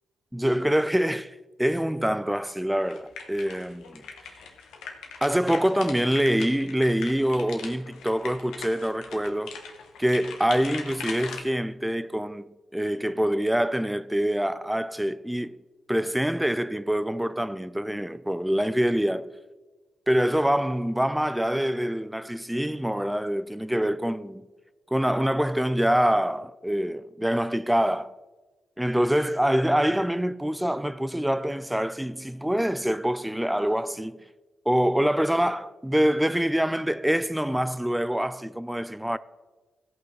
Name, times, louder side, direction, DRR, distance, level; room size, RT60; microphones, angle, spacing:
voice 1, 0.3-4.0 5.2-9.5 10.0-15.5 15.9-19.3 20.1-24.5 24.9-28.1 28.8-34.2 34.7-39.2, equal, 5° right, 0.4 m, -25 dB
sound 1, 2.8-11.4, left 6 dB, 80° left, 1.1 m, -40 dB
15.5 x 5.7 x 4.8 m
supercardioid pair, 45°, 0 cm